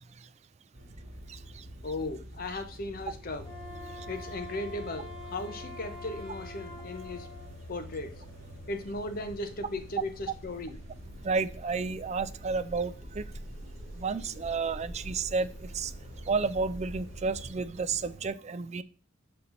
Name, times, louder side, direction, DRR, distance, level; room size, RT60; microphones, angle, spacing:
sound 1, 0.7-18.3, right 1 dB, 50° right, 1.8 m, -49 dB
voice 1, 1.8-3.5 4.1-7.3 7.7-8.2 8.7-10.8, left 2 dB, 45° left, 8 dB, 0.8 m, -37 dB
sound 2, 3.3-17.5, left 1 dB, 70° left, 1.4 m, -47 dB
Wind instrument woodwind instrument, 3.4-7.5, left 1 dB, 25° left, 1.8 m, -45 dB
voice 2, 11.2-13.2 14.0-15.9 16.3-18.8, right 4 dB, 35° right, 11 dB, 0.4 m, -31 dB
7.0 x 4.4 x 3.9 m, 0.38 s
head